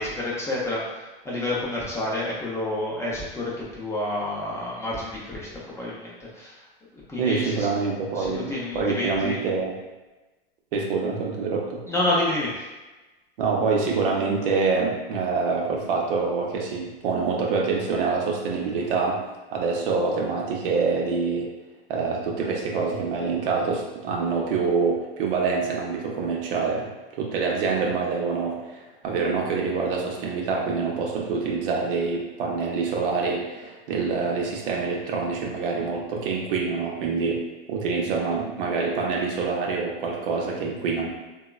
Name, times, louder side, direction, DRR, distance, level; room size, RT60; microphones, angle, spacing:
voice 1, 0.0-6.6 7.1-7.7 8.2-9.4 11.9-12.6, left 1 dB, 10° left, -6 dB, 0.5 m, -29 dB
voice 2, 7.2-9.7 10.7-11.8 13.4-19.2 19.5-21.5 21.9-26.9 27.2-37.4 37.7-41.1, right 4 dB, 65° right, -1 dB, 0.7 m, -26 dB
2.9 x 2.2 x 2.3 m, 1.1 s
hypercardioid pair, 100°, 29 cm